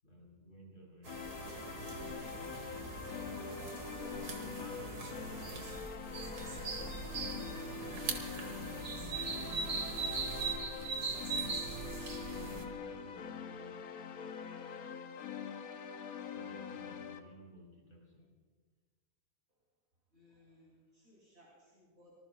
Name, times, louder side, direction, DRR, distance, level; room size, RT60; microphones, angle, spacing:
voice 1, 0.0-1.2 4.1-11.1 11.6-13.7 16.3-18.3, equal, 55° left, -2 dB, 3.9 m, -57 dB
sound 1, 1.0-12.6, right 4 dB, 85° right, 2.1 m, -40 dB
sound 2, 1.1-17.2, left 7 dB, 70° left, 1.4 m, -44 dB
voice 2, 20.1-22.1, left 1 dB, 45° right, -5 dB, 3.4 m, -63 dB
25.0 x 20.0 x 2.3 m, 1.5 s
omnidirectional pair, 1.6 m